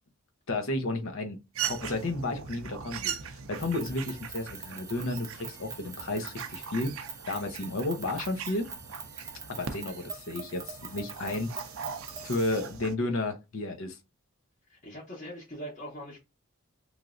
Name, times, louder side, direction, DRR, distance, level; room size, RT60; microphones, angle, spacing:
voice 1, 0.5-1.4 1.6-6.9 7.3-8.7 9.5-11.6 12.2-14.0, left 2 dB, 60° left, 0.7 m, -32 dB
sound 1, 1.5-13.0, right 7 dB, 65° right, 0.5 m, -40 dB
sound 2, 3.5-12.7, right 5 dB, 15° right, 0.6 m, -44 dB
voice 2, 14.7-16.2, equal, 35° left, 1.0 m, -42 dB
3.1 x 2.5 x 2.5 m
head